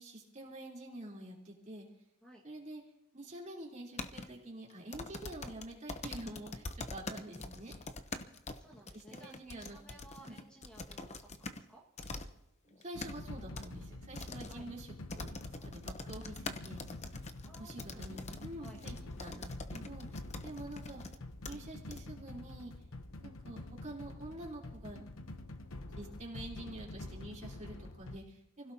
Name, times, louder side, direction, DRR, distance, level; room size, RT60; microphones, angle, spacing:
voice 1, 0.0-1.9 2.4-2.8 3.1-7.7 8.9-10.4 12.7-15.3 15.6-17.1 17.6-20.1 20.4-21.0 21.4-22.7 23.2-25.0 25.6-28.7, right 1 dB, 35° right, -4 dB, 3.7 m, -47 dB
sound 1, 4.0-4.3 4.9-11.6 12.0-12.3 12.7-13.1 13.6-13.7 14.2-14.6 15.1-21.2 21.5-21.6 21.9-22.0, left 3 dB, 35° left, 0.9 m, -44 dB
voice 2, 8.6-11.8 14.5-14.7 15.6-15.7 17.4-18.8, right 2 dB, 5° left, -3 dB, 1.8 m, -58 dB
sound 2, 12.9-28.2, left 2 dB, 85° left, 1.0 m, -47 dB
28.5 x 16.5 x 2.9 m, 0.83 s
head